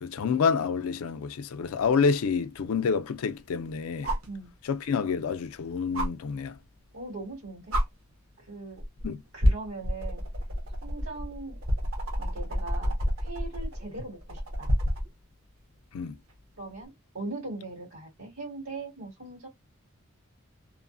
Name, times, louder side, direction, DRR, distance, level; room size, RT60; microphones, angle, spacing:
voice 1, 0.0-4.1 4.6-6.6 9.0-9.2 15.9-16.2, left 5 dB, 80° left, 0.4 m, -28 dB
sound 1, 1.8-1.9 4.0-4.3 5.9-6.1 7.2-7.3 7.7-7.9 8.8-9.0 9.4-15.1 16.7-16.8, equal, 70° right, 0.8 m, -28 dB
voice 2, 6.9-7.8 8.4-8.8 9.3-10.2 10.8-11.6 12.2-14.7 16.6-19.5, right 3 dB, 85° right, 1.8 m, -40 dB
2.9 x 2.0 x 2.5 m
head